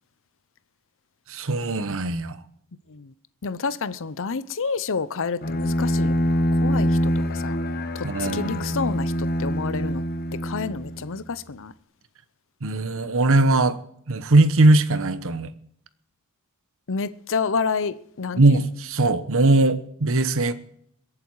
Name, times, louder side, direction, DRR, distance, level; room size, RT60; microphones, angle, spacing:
voice 1, 1.3-2.4 8.0-8.6 12.6-13.8 14.1-15.5 18.4-20.5, right 2 dB, 65° right, 1.1 m, -20 dB
voice 2, 3.4-7.6 7.9-10.0 10.4-11.7 16.9-18.6, left 5 dB, 60° left, 0.7 m, -29 dB
Bowed string instrument, 5.4-11.2, equal, 45° left, 1.2 m, -25 dB
22.5 x 8.7 x 4.7 m
head